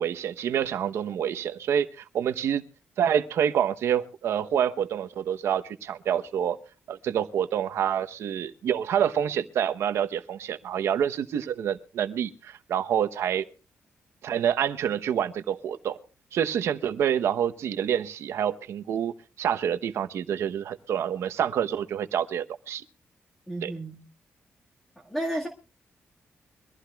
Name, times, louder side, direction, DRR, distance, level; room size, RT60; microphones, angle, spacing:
voice 1, 0.0-2.6 3.0-6.6 6.9-13.4 14.2-16.0 16.3-22.8 23.6-23.7, right 9 dB, 85° right, 1.0 m, -27 dB
voice 2, 23.5-24.1 25.0-25.5, right 1 dB, 5° left, 1.9 m, -32 dB
23.5 x 15.0 x 2.4 m
wide cardioid pair, 160°, 4 cm